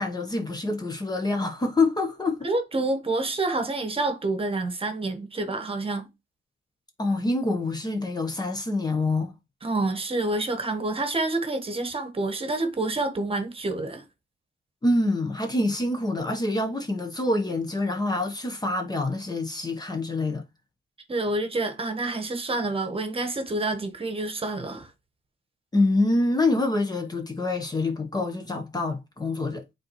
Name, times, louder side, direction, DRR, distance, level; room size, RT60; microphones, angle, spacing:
voice 1, 0.0-2.5 7.0-9.4 14.8-20.4 25.7-29.6, left 2 dB, 20° left, 1.0 m, -26 dB
voice 2, 2.4-6.1 9.6-14.0 21.1-24.9, right 2 dB, 30° right, 1.2 m, -28 dB
8.7 x 3.9 x 3.1 m
cardioid pair, 90°, 20 cm